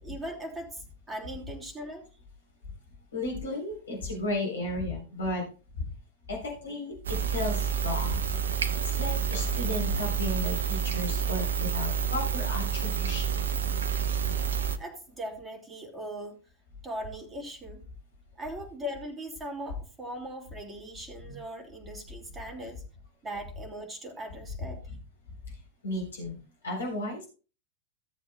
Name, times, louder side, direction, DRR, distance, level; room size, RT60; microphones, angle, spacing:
voice 1, 0.0-2.0 14.8-16.3 16.8-17.8 18.4-22.8 23.2-24.8, right 1 dB, 15° right, 2 dB, 3.3 m, -39 dB
voice 2, 3.1-5.5 5.7-5.9 6.3-8.2 8.5-13.4 21.3-21.4 24.9-25.0 25.5-27.3, left 2 dB, 70° left, 0 dB, 3.7 m, -34 dB
sound 1, 7.0-14.8, right 7 dB, 65° right, 0.9 m, -29 dB
17.0 x 7.7 x 2.2 m, 0.34 s
figure-of-eight pair, 90°, 0 cm